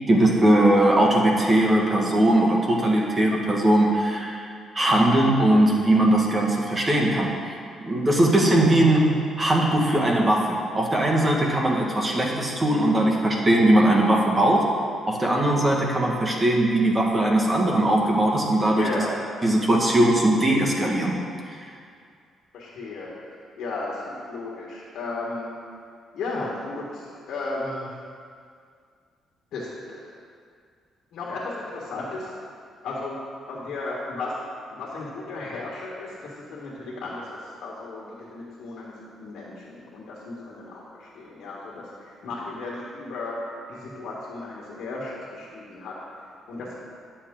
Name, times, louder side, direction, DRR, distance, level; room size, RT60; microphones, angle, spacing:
voice 1, 0.0-4.5 4.8-7.3 7.8-14.7 15.1-18.9 19.4-21.2 21.5-21.6, right 1 dB, 25° right, -1 dB, 1.6 m, -20 dB
voice 2, 18.7-19.1 22.5-23.1 23.6-25.5 26.1-27.9 29.5-30.0 31.1-32.3 32.8-33.2 33.5-34.3 34.7-43.3 43.7-45.9 46.5-46.8, left 3 dB, 75° left, -5 dB, 1.6 m, -34 dB
11.0 x 7.3 x 3.7 m, 2.2 s
cardioid pair, 90°, 0 cm